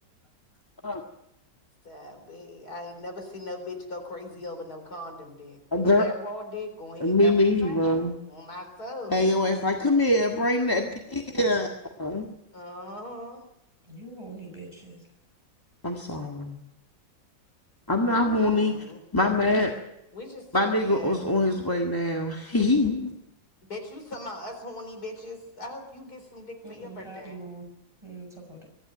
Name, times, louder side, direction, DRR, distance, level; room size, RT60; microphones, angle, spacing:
voice 1, 1.8-9.3 12.5-13.5 18.1-19.0 20.1-21.2 23.6-27.4, left 1 dB, 50° left, 4 dB, 4.5 m, -40 dB
voice 2, 5.7-6.0 7.0-8.1 9.1-11.7 12.0-12.3 15.8-16.6 17.9-18.8 19.1-19.7 20.5-23.1, left 2 dB, 10° left, 1 dB, 1.5 m, -23 dB
voice 3, 13.9-15.0 26.6-27.7 28.0-28.7, right 3 dB, 15° right, 1 dB, 6.7 m, -43 dB
24.0 x 13.0 x 9.4 m, 0.86 s
omnidirectional pair, 2.1 m